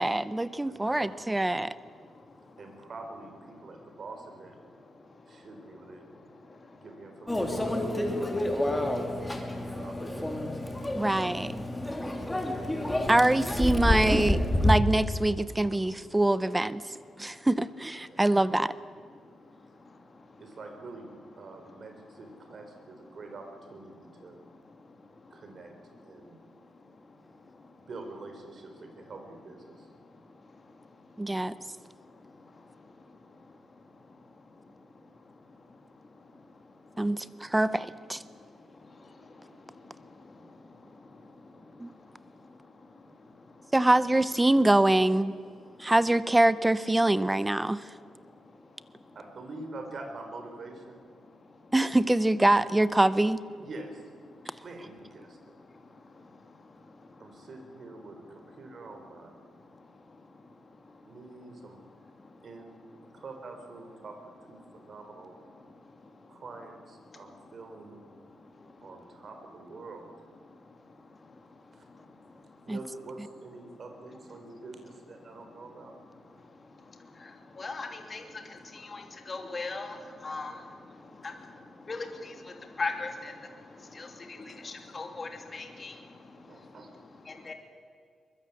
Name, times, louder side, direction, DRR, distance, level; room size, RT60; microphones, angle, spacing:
voice 1, 0.0-1.7 10.9-11.6 13.1-16.8 17.2-18.7 31.2-31.5 37.0-38.2 41.8-41.9 43.7-45.3 45.8-47.8 51.7-53.4 72.7-72.8, right 1 dB, 10° right, 15 dB, 0.6 m, -24 dB
voice 2, 0.7-1.1 2.6-4.6 5.3-6.0 6.8-9.0 9.7-10.3 14.5-14.6 16.4-16.5 18.1-18.7 20.4-24.4 25.3-25.7 26.0-26.4 27.8-29.9 39.2-40.2 42.4-43.7 49.1-51.0 53.6-54.0 54.6-55.4 57.2-59.3 61.0-61.8 62.4-62.8 63.1-65.3 66.3-68.0 68.8-70.1 71.7-71.9 72.6-75.9 83.8-83.9 84.4-84.5 86.5-86.9, right 3 dB, 45° right, 4 dB, 4.3 m, -46 dB
Microwave oven, 7.3-14.8, left 1 dB, 10° left, 2.8 m, -29 dB
voice 3, 77.6-78.2 78.9-79.0 79.3-80.0 80.2-80.5 81.9-82.0 82.8-83.3 84.0-84.1 84.6-85.9 87.5-87.6, left 3 dB, 30° left, 4 dB, 2.6 m, -36 dB
23.0 x 21.5 x 8.5 m, 2.1 s
wide cardioid pair, 140°, 0 cm